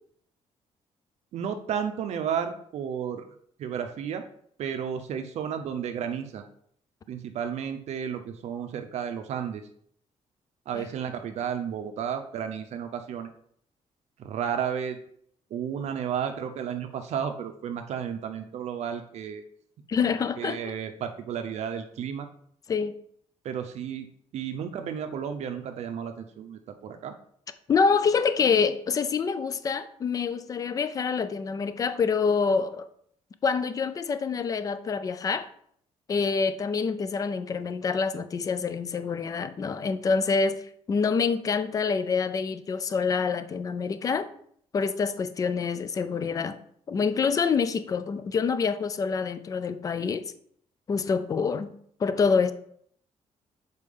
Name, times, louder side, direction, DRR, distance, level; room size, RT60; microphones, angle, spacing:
voice 1, 1.3-3.3 3.6-4.2 4.6-6.4 7.1-9.6 10.7-13.3 14.2-15.0 15.5-19.4 20.4-22.3 23.4-24.1 24.3-27.1, right 8 dB, 65° right, 6 dB, 0.6 m, -32 dB
voice 2, 19.9-20.6 22.7-22.9 27.7-32.9 33.4-35.5 36.1-40.6 40.9-44.3 44.7-46.6 46.9-50.2 50.9-51.7 52.0-52.5, left 5 dB, 30° left, 12 dB, 0.4 m, -26 dB
6.6 x 4.2 x 3.6 m, 0.64 s
cardioid pair, 160°, 12 cm